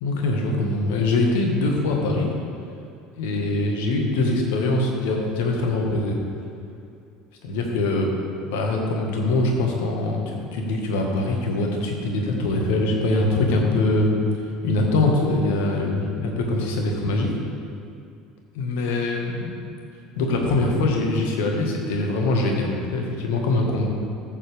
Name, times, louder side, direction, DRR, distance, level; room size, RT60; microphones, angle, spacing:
voice 1, 0.0-2.3 3.2-6.2 7.4-8.2 8.5-17.3 18.5-19.5 20.1-23.9, left 2 dB, 70° left, 1 dB, 1.6 m, -23 dB
14.5 x 7.3 x 3.5 m, 2.5 s
hypercardioid pair, 70°, 0 cm